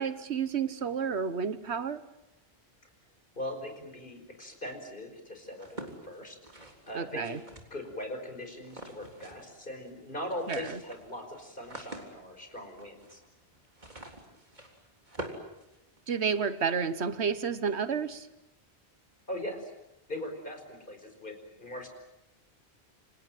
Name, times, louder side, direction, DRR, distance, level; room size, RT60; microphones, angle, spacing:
voice 1, 0.0-2.0 6.9-7.4 10.5-10.8 16.1-18.3, right 6 dB, 80° right, 1.5 m, -31 dB
voice 2, 3.4-6.4 6.9-7.4 7.7-13.2 19.3-19.7 20.1-21.9, left 1 dB, 50° left, 5.4 m, -40 dB
sound 1, 5.5-8.0 8.6-9.6 9.8-9.9 10.2-16.4, right 1 dB, 45° right, 3.8 m, -46 dB
28.5 x 26.5 x 7.6 m
omnidirectional pair, 1.1 m